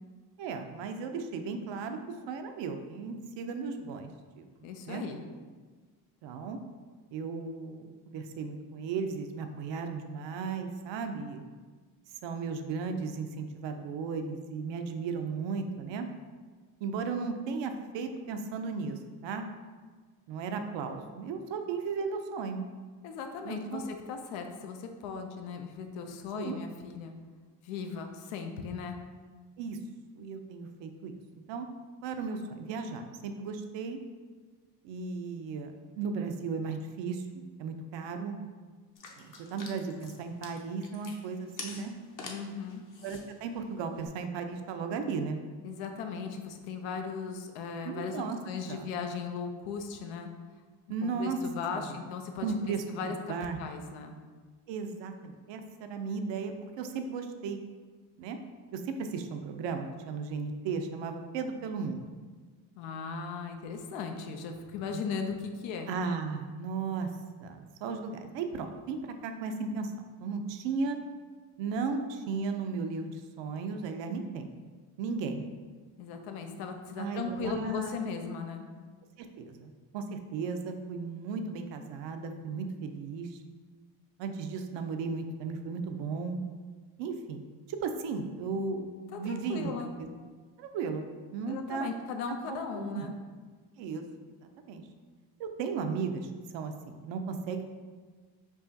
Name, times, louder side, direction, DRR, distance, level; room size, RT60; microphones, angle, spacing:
voice 1, 0.4-4.1 4.4-4.5 4.9-5.0 6.2-6.6 7.1-11.4 12.2-16.1 16.8-19.5 20.3-22.6 23.4-23.8 26.3-26.6 29.6-29.8 30.2-31.1 31.5-31.7 32.0-34.0 34.8-37.2 37.6-38.4 39.2-41.9 43.0-45.4 47.9-48.4 48.7-48.9 50.9-51.4 51.7-52.0 52.4-53.6 54.7-57.6 58.2-58.4 58.7-62.1 64.9-65.0 65.9-67.1 67.4-69.9 70.2-71.0 71.6-74.5 75.0-75.4 77.0-78.0 79.2-83.4 84.2-86.4 87.0-87.4 87.7-89.7 90.0-90.1 90.6-91.0 91.3-91.9 92.5-93.1 93.8-94.0 94.6-94.8 95.4-97.7, right 5 dB, 65° right, 6 dB, 0.6 m, -35 dB
voice 2, 4.6-5.2 23.0-27.1 27.6-29.0 42.2-42.8 45.6-50.3 51.0-54.1 62.8-65.9 76.0-78.7 89.1-89.9 91.4-93.1, left 5 dB, 80° left, 5 dB, 0.6 m, -37 dB
sound 1, 39.0-44.1, left 3 dB, 40° left, 0.8 m, -48 dB
4.7 x 2.4 x 2.6 m, 1.5 s
hypercardioid pair, 55°, 48 cm